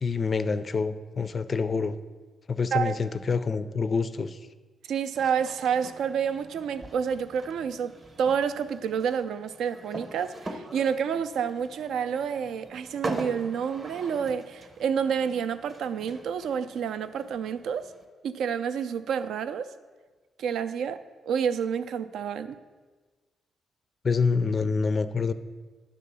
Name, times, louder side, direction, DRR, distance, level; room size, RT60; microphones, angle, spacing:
voice 1, 0.0-2.0 2.5-4.4 24.0-25.3, left 4 dB, 30° left, 13 dB, 0.4 m, -26 dB
voice 2, 4.9-17.9 18.2-19.7 20.4-22.6, right 7 dB, 75° right, 12 dB, 0.4 m, -29 dB
sound 1, 5.1-18.0, right 2 dB, 25° right, 0.8 m, -42 dB
10.5 x 3.8 x 6.8 m, 1.4 s
cardioid pair, 155°, 0 cm